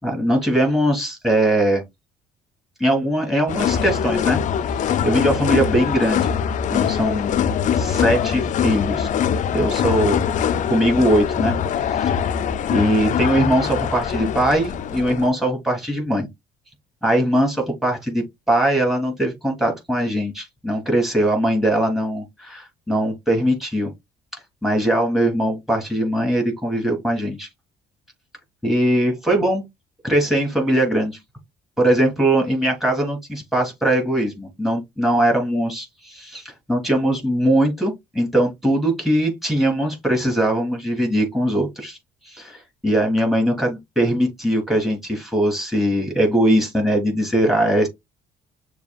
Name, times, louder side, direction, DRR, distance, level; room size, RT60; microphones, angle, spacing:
voice 1, 0.0-1.8 2.8-4.4 5.0-6.3 6.7-7.3 7.7-9.1 9.5-10.2 10.7-11.5 12.0-12.2 12.7-16.3 17.0-23.9 24.6-27.5 28.6-29.6 30.0-31.2 31.8-42.0 42.3-47.9, right 1 dB, ahead, 2.7 m, -21 dB
sound 1, 3.5-15.3, left 8 dB, 50° left, 0.4 m, -23 dB
6.6 x 2.6 x 2.3 m
cardioid pair, 110°, 17 cm